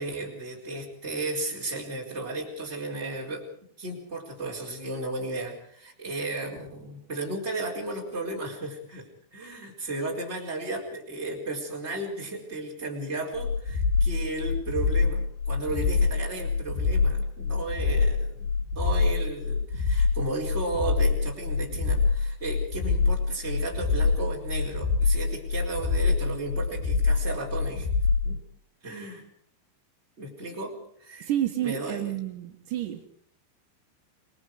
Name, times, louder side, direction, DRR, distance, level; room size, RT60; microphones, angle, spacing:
voice 1, 0.0-3.5 3.8-27.9 28.2-28.4 28.8-29.2 30.2-31.3 31.6-32.2, right 2 dB, 15° right, -2 dB, 4.1 m, -34 dB
sound 1, 13.4-28.3, left 4 dB, 60° left, 4.1 m, -25 dB
voice 2, 31.3-33.1, right 12 dB, 85° right, 5 dB, 1.8 m, -30 dB
27.0 x 20.0 x 4.9 m, 0.62 s
omnidirectional pair, 5.7 m